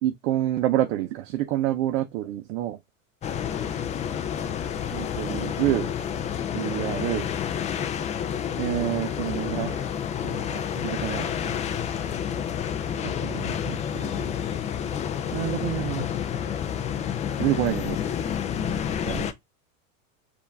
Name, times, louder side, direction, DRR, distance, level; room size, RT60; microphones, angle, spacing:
voice 1, 0.0-2.8 4.9-5.9 6.5-7.3 8.6-9.8 10.2-11.3 13.0-14.2 15.3-16.1 17.4-18.0 19.1-19.3, right 13 dB, 60° right, 0.7 m, -28 dB
sound 1, 3.2-19.3, left 8 dB, 20° left, 0.3 m, -29 dB
4.8 x 2.6 x 3.4 m
supercardioid pair, 115°, 40 cm